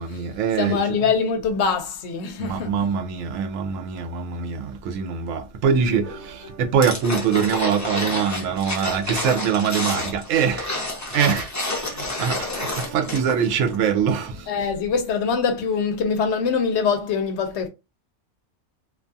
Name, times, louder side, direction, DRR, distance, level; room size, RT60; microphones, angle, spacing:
voice 1, 0.0-0.8 2.4-6.2 6.6-10.7 11.1-11.5 12.2-12.4 12.9-14.3, right 7 dB, 85° right, 1.0 m, -23 dB
voice 2, 0.5-2.9 14.5-17.7, left 5 dB, 70° left, 0.8 m, -23 dB
sound 1, 6.0-14.6, right 1 dB, 15° right, 0.7 m, -45 dB
sound 2, 6.8-13.4 13.7-13.8, left 2 dB, 20° left, 0.4 m, -29 dB
2.5 x 2.3 x 2.6 m
omnidirectional pair, 1.3 m